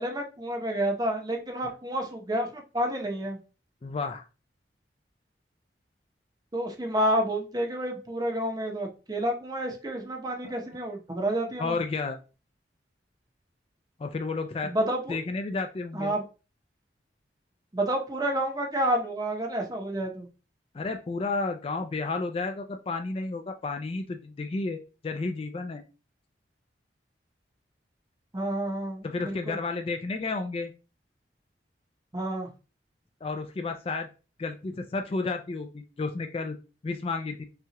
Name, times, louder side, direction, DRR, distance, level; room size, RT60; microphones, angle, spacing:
voice 1, 0.0-3.4 6.5-11.8 14.6-15.2 15.9-16.2 17.7-20.3 28.3-29.6 32.1-32.5, right 1 dB, 20° right, 2 dB, 0.7 m, -29 dB
voice 2, 3.8-4.2 10.4-10.5 11.6-12.2 14.0-14.7 15.1-16.1 20.7-25.8 29.0-30.7 33.2-34.1 34.4-36.6 36.8-37.4, left 3 dB, 30° left, 6 dB, 0.3 m, -32 dB
5.6 x 2.3 x 2.9 m, 0.33 s
head